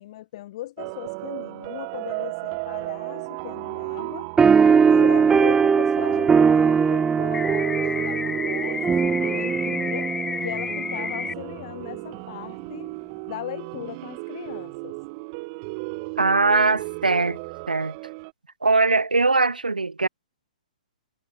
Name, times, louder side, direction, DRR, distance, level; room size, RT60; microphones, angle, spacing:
voice 1, 0.0-4.3 4.9-13.0 13.3-15.0, left 15 dB, 45° left, 4.9 m, -38 dB
sound 1, 0.8-18.3, right 30 dB, 35° right, 2.3 m, -35 dB
sound 2, 4.4-11.3, right 6 dB, 10° right, 1.7 m, -20 dB
sound 3, 7.3-11.3, left 5 dB, 10° left, 1.6 m, -31 dB
voice 2, 16.2-17.4 17.7-18.0 18.6-20.1, right 3 dB, 90° right, 1.3 m, -21 dB
figure-of-eight pair, 125°, 4 cm